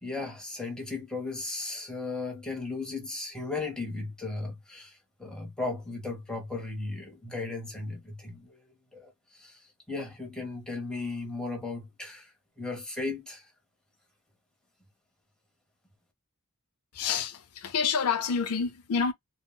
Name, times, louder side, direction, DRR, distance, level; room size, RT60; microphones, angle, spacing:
voice 1, 0.0-8.6 8.9-9.6 9.9-13.5, left 3 dB, 5° left, 0.9 m, -36 dB
voice 2, 16.9-19.1, left 6 dB, 80° left, 0.5 m, -28 dB
3.7 x 2.0 x 2.2 m
head